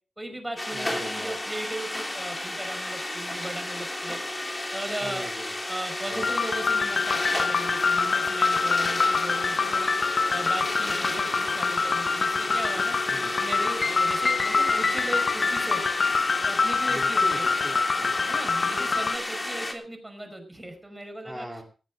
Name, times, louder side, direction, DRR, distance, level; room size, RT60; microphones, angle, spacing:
voice 1, 0.2-4.2 4.7-5.3 5.7-9.9 10.3-13.0 13.4-15.9 16.4-17.5 18.3-21.5, right 1 dB, 15° right, 6 dB, 5.3 m, -37 dB
sound 1, 0.6-19.7, left 1 dB, 20° left, 3.3 m, -32 dB
voice 2, 0.7-1.4 5.0-5.5 6.1-6.3 13.1-13.4 16.9-18.4 21.2-21.6, equal, ahead, -1 dB, 3.6 m, -39 dB
sound 2, 6.1-19.2, left 4 dB, 55° left, 1.4 m, -25 dB
18.5 x 14.5 x 3.8 m, 0.36 s
wide cardioid pair, 115°, 0 cm